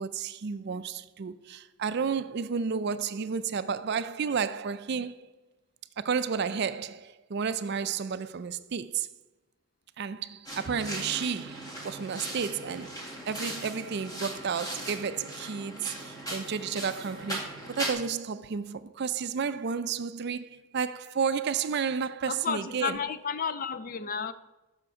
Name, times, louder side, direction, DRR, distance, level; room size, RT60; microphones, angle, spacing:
voice 1, 0.0-5.3 6.0-9.1 10.0-13.0 13.3-23.0, right 6 dB, 50° right, 0.4 m, -32 dB
sound 1, 10.5-17.9, right 1 dB, 15° left, 2.0 m, -38 dB
voice 2, 22.3-24.3, left 6 dB, 40° left, 0.4 m, -32 dB
7.5 x 5.8 x 4.8 m
head